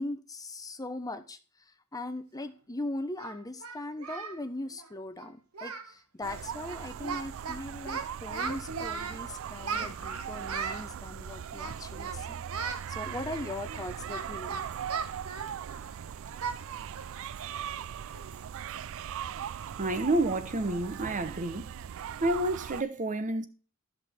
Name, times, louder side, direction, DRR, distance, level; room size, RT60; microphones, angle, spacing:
voice 1, 0.0-1.4 1.9-14.6, left 2 dB, 15° left, 0.7 m, -39 dB
Singing, 2.4-2.5 3.2-4.4 4.7-4.9 5.2-5.3 5.5-5.9 6.2-6.4 6.7-7.6 7.9-9.2 9.6-10.8 11.5-12.2 12.5-12.8 13.3-15.9 16.4-16.6 17.0-17.1 17.6-17.7 18.1-18.4, right 5 dB, 85° right, 1.1 m, -37 dB
sound 1, 6.2-22.8, right 8 dB, 65° right, 0.4 m, -40 dB
voice 2, 19.8-21.7 22.2-23.5, right 2 dB, 35° right, 0.8 m, -29 dB
13.0 x 6.0 x 3.4 m
head